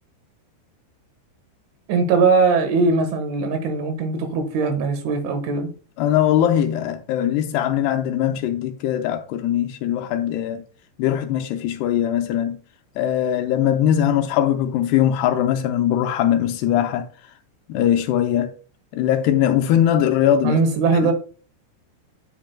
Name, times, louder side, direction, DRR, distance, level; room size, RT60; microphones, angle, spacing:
voice 1, 1.9-5.7 20.4-21.1, right 4 dB, 85° right, 3.9 m, -20 dB
voice 2, 6.0-10.6 11.0-12.6 13.0-17.1 17.7-18.5 18.9-20.6 21.0-21.1, left 10 dB, 90° left, 2.4 m, -20 dB
10.0 x 8.3 x 2.2 m
omnidirectional pair, 5.3 m